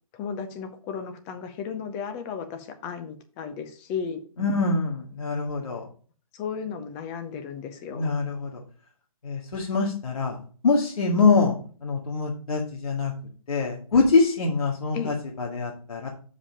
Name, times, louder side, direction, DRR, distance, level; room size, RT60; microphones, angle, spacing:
voice 1, 0.1-4.2 6.3-8.1 14.9-15.2, left 6 dB, 15° left, 8 dB, 0.7 m, -34 dB
voice 2, 4.4-5.8 7.9-8.5 9.2-10.4 10.6-11.5 11.8-13.1 13.5-16.1, left 4 dB, 70° left, -2 dB, 2.1 m, -24 dB
7.2 x 5.0 x 4.9 m, 0.41 s
hypercardioid pair, 160°, 19 cm